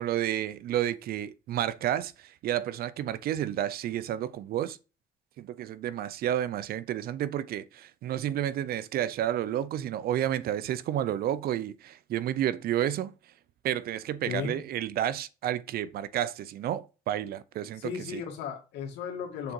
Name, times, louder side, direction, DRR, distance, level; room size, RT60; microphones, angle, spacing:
voice 1, 0.0-4.8 5.4-13.1 13.6-18.2, right 11 dB, 65° right, 0.6 m, -31 dB
voice 2, 14.3-14.6 17.7-19.5, left 7 dB, 85° left, 2.2 m, -35 dB
6.9 x 3.8 x 4.5 m
cardioid pair, 110°, 17 cm